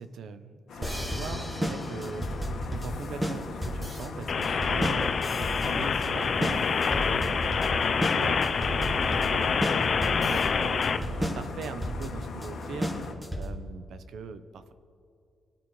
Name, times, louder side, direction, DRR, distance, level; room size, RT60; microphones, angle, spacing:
voice 1, 0.0-5.1 5.6-9.5 10.0-12.9 13.3-14.7, right 5 dB, 75° right, 11 dB, 0.7 m, -41 dB
sound 1, 0.7-13.1, left 3 dB, 70° left, 1.5 m, -39 dB
sound 2, 0.8-13.7, equal, 10° right, 1.3 m, -33 dB
sound 3, 4.3-11.0, left 5 dB, 45° left, 0.5 m, -26 dB
21.0 x 8.4 x 3.2 m, 2.5 s
cardioid pair, 140°, 0 cm